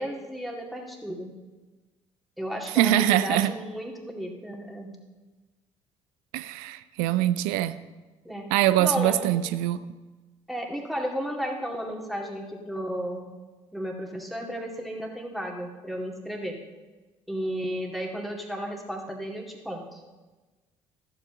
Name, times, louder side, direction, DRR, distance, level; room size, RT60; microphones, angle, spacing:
voice 1, 0.0-1.3 2.4-4.9 8.2-8.5 8.8-9.3 10.5-13.3 13.7-16.6 17.3-20.0, equal, ahead, 2.2 m, -33 dB
voice 2, 2.7-3.5 6.3-7.8 8.5-9.8, right 13 dB, 60° right, 0.5 m, -23 dB
14.0 x 7.4 x 3.8 m
figure-of-eight pair, 50°, 15 cm